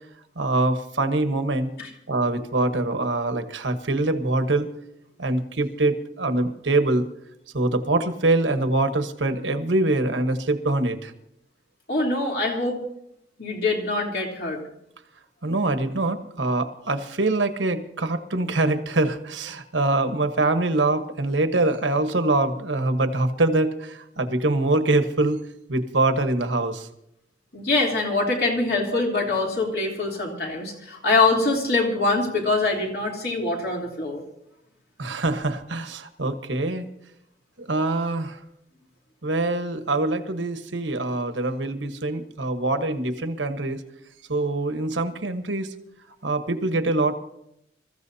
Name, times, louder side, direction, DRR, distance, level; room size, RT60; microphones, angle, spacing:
voice 1, 0.4-1.7 2.1-4.7 5.2-7.0 7.5-11.1 15.4-25.4 25.7-26.9 28.9-29.0 35.0-36.9 37.6-38.4 39.2-43.8 44.3-45.7 46.2-47.1, right 2 dB, 90° right, 8 dB, 1.2 m, -24 dB
voice 2, 11.9-12.8 13.4-14.6 27.5-34.2, left 3 dB, 55° left, -1 dB, 3.3 m, -24 dB
27.0 x 14.5 x 2.8 m, 0.80 s
head